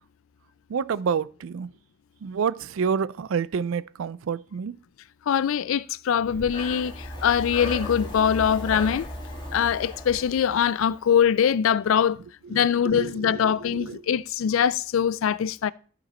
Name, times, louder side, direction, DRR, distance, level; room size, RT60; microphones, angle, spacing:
voice 1, 0.7-1.7 2.2-4.7 12.5-13.1 13.8-14.0, right 6 dB, 65° right, 0.4 m, -28 dB
voice 2, 5.3-9.1 9.5-12.2 12.5-15.7, left 8 dB, 65° left, 0.4 m, -23 dB
Breathing, 6.2-11.1, left 1 dB, 20° left, 2.2 m, -36 dB
13.5 x 5.1 x 4.2 m
head